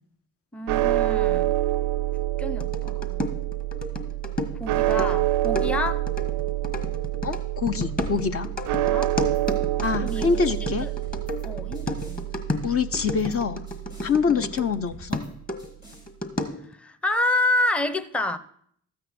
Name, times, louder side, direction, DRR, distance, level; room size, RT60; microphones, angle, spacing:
voice 1, 0.5-1.6 2.4-3.2 4.6-6.0 8.9-9.1 10.0-10.3 10.6-10.9 11.4-12.3 14.3-14.5 16.7-18.4, left 2 dB, 5° left, 0.7 m, -28 dB
sound 1, 0.7-14.9, right 15 dB, 75° right, 0.5 m, -27 dB
sound 2, 2.6-14.8 15.1-16.7, left 1 dB, 25° left, 1.7 m, -33 dB
voice 2, 7.2-8.5 9.8-10.9 12.6-13.6 14.0-15.2, left 5 dB, 45° left, 0.8 m, -25 dB
sound 3, 9.1-9.5 9.8-11.5 11.7-12.2 12.9-13.4 13.7-14.1 14.9-15.3 15.6-16.1, left 2 dB, 85° left, 6.1 m, -50 dB
13.5 x 8.8 x 4.3 m
hypercardioid pair, 55°, 32 cm